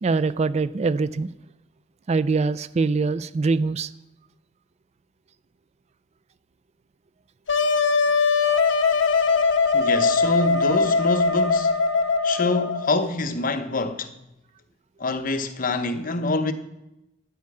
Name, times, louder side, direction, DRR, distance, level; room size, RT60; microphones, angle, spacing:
voice 1, 0.0-1.3 2.1-3.9, right 4 dB, 35° right, 0.4 m, -23 dB
Wind instrument woodwind instrument, 7.5-13.0, left 4 dB, 65° left, 1.1 m, -21 dB
voice 2, 9.7-11.9 12.2-14.1 15.0-16.5, left 2 dB, 45° left, 0.9 m, -26 dB
12.5 x 9.5 x 4.9 m
head